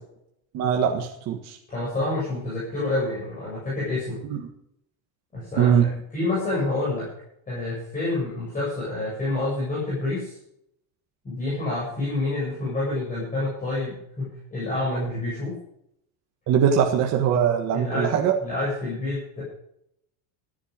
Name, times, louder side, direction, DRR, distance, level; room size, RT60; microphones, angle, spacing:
voice 1, 0.5-1.6 4.3-4.5 5.6-5.9 16.5-18.4, right 8 dB, 35° right, 2 dB, 1.6 m, -21 dB
voice 2, 1.7-4.2 5.3-7.1 7.5-10.4 11.2-15.6 17.7-18.1 18.4-19.4, left 2 dB, 15° left, -7 dB, 7.8 m, -28 dB
15.5 x 12.0 x 5.3 m, 0.72 s
cardioid pair, 175°, 49 cm